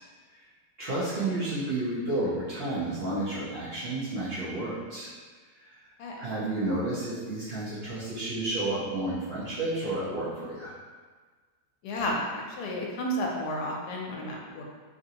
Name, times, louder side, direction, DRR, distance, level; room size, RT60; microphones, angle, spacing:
voice 1, 0.8-5.1 5.6-5.8 6.2-10.7, right 2 dB, 50° right, -11 dB, 0.7 m, -31 dB
voice 2, 11.8-14.6, equal, 80° left, -1 dB, 1.1 m, -32 dB
3.0 x 2.6 x 2.7 m, 1.5 s
omnidirectional pair, 1.7 m